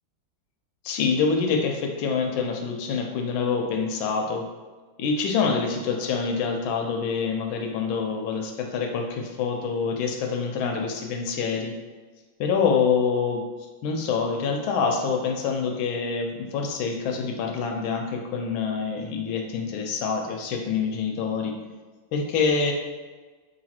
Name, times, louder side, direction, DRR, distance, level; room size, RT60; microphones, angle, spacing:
voice 1, 0.8-4.5 5.0-11.8 12.4-13.5 13.8-21.6 22.1-22.7, left 5 dB, 75° left, 3 dB, 1.3 m, -26 dB
3.9 x 2.7 x 4.2 m, 1.3 s
omnidirectional pair, 2.3 m